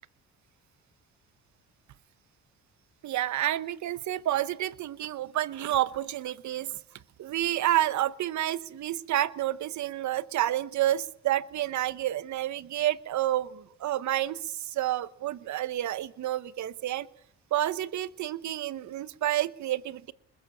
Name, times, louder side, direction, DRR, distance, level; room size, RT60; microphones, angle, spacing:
voice 1, 3.0-6.8 7.2-17.1 17.5-20.1, right 13 dB, 70° right, 16 dB, 1.0 m, -29 dB
21.5 x 21.0 x 8.7 m, 0.71 s
cardioid pair, 90°, 30 cm